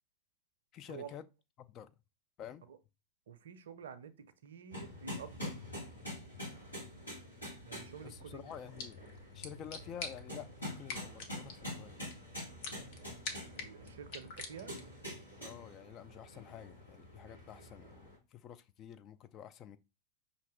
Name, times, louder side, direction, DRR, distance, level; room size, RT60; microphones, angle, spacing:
voice 1, 0.7-1.3 1.6-1.9 2.4-2.6 8.0-9.0 9.3-12.1 15.4-19.8, left 9 dB, 35° left, 0.4 m, -49 dB
voice 2, 3.3-4.1 4.4-5.6 7.6-8.5 9.4-9.6 13.6-14.7, right 7 dB, 60° right, 0.5 m, -49 dB
sound 1, 4.7-18.2, left 1 dB, 85° left, 1.7 m, -46 dB
sound 2, 8.5-15.0, left 4 dB, 50° left, 0.9 m, -47 dB
5.7 x 2.7 x 3.3 m
figure-of-eight pair, 90°, 0 cm